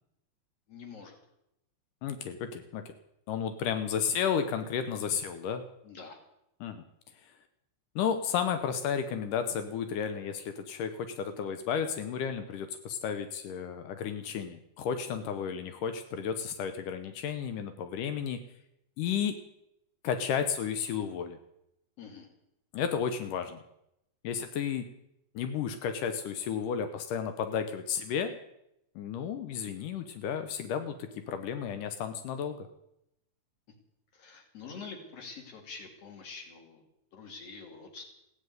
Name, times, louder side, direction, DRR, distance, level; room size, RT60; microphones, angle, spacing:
voice 1, 0.7-1.2 5.8-6.2 22.0-22.3 34.1-36.8 37.1-38.1, left 4 dB, 50° left, 4 dB, 3.5 m, -46 dB
voice 2, 2.0-2.9 3.3-5.6 6.6-6.8 8.0-18.4 19.0-19.4 20.0-21.4 22.7-23.6 24.2-24.8 25.4-28.3 29.0-32.7, left 7 dB, 85° left, 8 dB, 2.7 m, -32 dB
16.0 x 9.4 x 9.4 m, 0.81 s
omnidirectional pair, 3.6 m